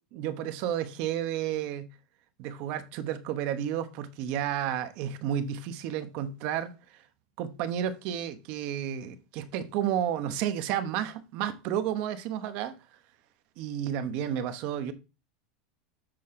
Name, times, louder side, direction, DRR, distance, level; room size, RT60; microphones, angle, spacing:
voice 1, 0.1-1.9 2.4-7.0 7.4-12.7 13.6-14.9, right 10 dB, 40° right, 1.0 m, -31 dB
7.7 x 6.3 x 3.7 m
supercardioid pair, 180°, 3 cm